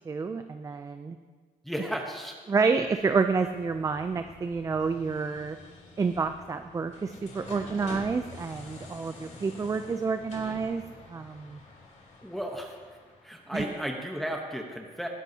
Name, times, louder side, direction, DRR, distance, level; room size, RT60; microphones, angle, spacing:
voice 1, 0.1-1.2 2.5-5.6 6.0-10.8 11.1-11.6 13.5-13.6, right 4 dB, 20° right, 8 dB, 0.4 m, -29 dB
voice 2, 1.6-2.4 12.2-13.0 13.2-15.1, equal, ahead, 1 dB, 1.0 m, -34 dB
sound 1, 2.9-13.6, left 3 dB, 50° left, 2.9 m, -47 dB
19.5 x 11.5 x 2.8 m, 1.5 s
cardioid pair, 140°, 15 cm